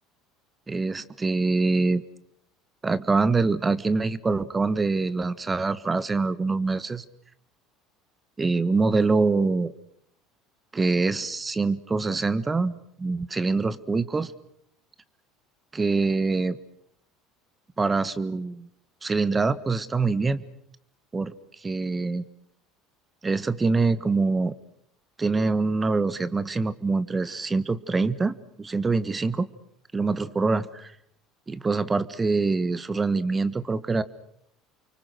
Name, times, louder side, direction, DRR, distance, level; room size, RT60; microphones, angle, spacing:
voice 1, 0.7-2.0 2.8-7.0 8.4-9.7 10.7-14.3 15.7-16.6 17.8-18.7 19.0-20.4 21.1-21.3 21.6-22.2 23.2-24.5 25.2-29.5 29.9-30.9 31.5-34.0, right 3 dB, 20° right, 16 dB, 1.4 m, -24 dB
29.5 x 24.5 x 6.3 m, 0.70 s
hypercardioid pair, 75°, 0 cm